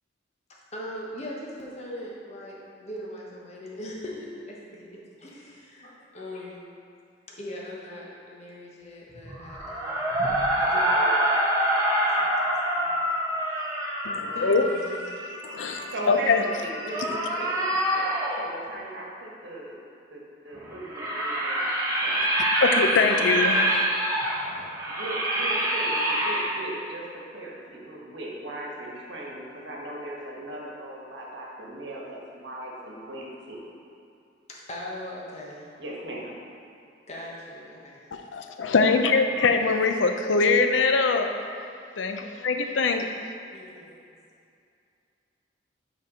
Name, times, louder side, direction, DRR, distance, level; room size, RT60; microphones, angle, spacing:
voice 1, 0.5-4.9 5.2-6.6 7.3-13.1 13.3-13.5 14.3-15.7 23.0-23.2 34.5-35.7 37.1-38.1 43.5-44.0, left 1 dB, 35° left, -4 dB, 1.0 m, -41 dB
sound 1, 9.2-18.5 20.5-26.4, right 1 dB, 20° right, 0.9 m, -26 dB
voice 2, 14.0-14.7 15.4-16.4 22.6-23.6 38.3-41.3 42.0-43.1, left 4 dB, 85° left, 6 dB, 0.5 m, -23 dB
voice 3, 15.9-19.8 20.1-22.2 23.1-23.8 24.9-27.0 27.3-33.6 35.8-36.4, right 1 dB, 70° right, -3 dB, 1.3 m, -38 dB
5.7 x 4.6 x 4.9 m, 2.5 s
head